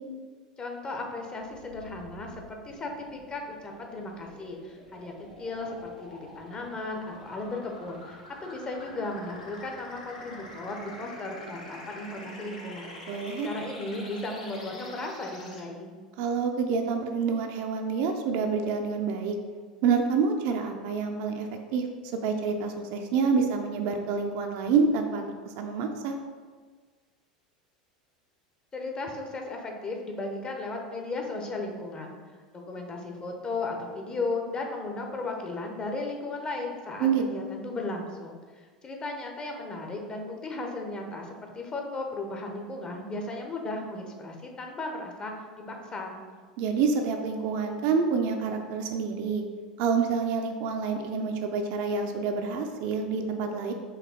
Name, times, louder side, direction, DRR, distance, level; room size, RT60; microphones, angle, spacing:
voice 1, 0.6-5.1 5.4-15.9 28.7-32.2 32.5-46.2, left 2 dB, 25° left, 2 dB, 0.7 m, -36 dB
sound 1, 1.4-15.6, left 1 dB, 70° left, 0.9 m, -47 dB
voice 2, 13.1-13.5 16.2-19.4 19.8-21.9 22.2-25.2 25.6-26.2 37.0-37.5 46.6-49.4 49.8-53.7, right 5 dB, 50° right, 4 dB, 0.4 m, -27 dB
4.7 x 3.0 x 3.5 m, 1.5 s
figure-of-eight pair, 80°, 4 cm